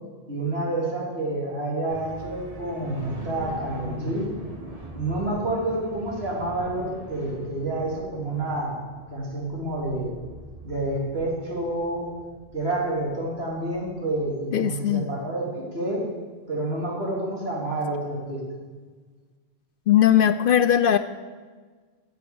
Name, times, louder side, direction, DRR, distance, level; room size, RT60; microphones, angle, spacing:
voice 1, 0.3-4.3 4.9-8.8 9.1-10.2 10.6-12.1 12.5-16.0 16.5-18.4, right 2 dB, 70° right, -4 dB, 3.6 m, -28 dB
sound 1, 1.9-14.3, right 1 dB, 35° right, 1.8 m, -42 dB
voice 2, 14.5-15.1 19.9-21.0, left 10 dB, 60° left, 12 dB, 0.7 m, -19 dB
15.0 x 7.9 x 7.0 m, 1.5 s
omnidirectional pair, 1.1 m